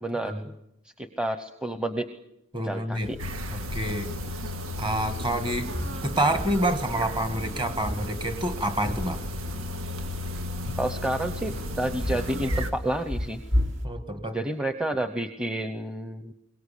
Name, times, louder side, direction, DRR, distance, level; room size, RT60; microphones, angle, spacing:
voice 1, 0.0-0.3 1.0-2.1 2.6-3.2 10.8-13.4 14.3-16.3, right 1 dB, 5° right, 7 dB, 0.9 m, -30 dB
voice 2, 2.5-3.1 3.5-4.1 4.8-5.7 6.0-9.2 13.8-14.4, right 1 dB, 25° right, 9 dB, 1.6 m, -28 dB
sound 1, 2.9-13.9, left 1 dB, 60° right, 2.9 m, -35 dB
sound 2, 3.2-12.7, left 1 dB, 90° right, 1.8 m, -35 dB
22.5 x 18.5 x 8.5 m, 0.84 s
head